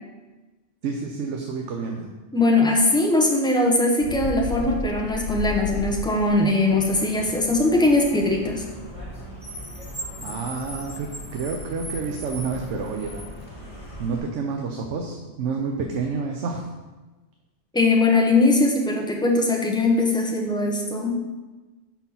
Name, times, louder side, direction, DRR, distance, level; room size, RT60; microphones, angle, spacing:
voice 1, 0.8-2.1 10.2-13.1 14.0-16.7, right 5 dB, 85° right, 2 dB, 1.0 m, -29 dB
voice 2, 2.3-8.7 17.7-21.1, left 2 dB, 5° left, -1 dB, 0.7 m, -20 dB
Bird, 4.0-6.5, left 3 dB, 90° left, 0.9 m, -31 dB
Car, 6.7-14.2, equal, 30° left, 2.4 m, -38 dB
5.3 x 4.5 x 5.6 m, 1.2 s
omnidirectional pair, 1.2 m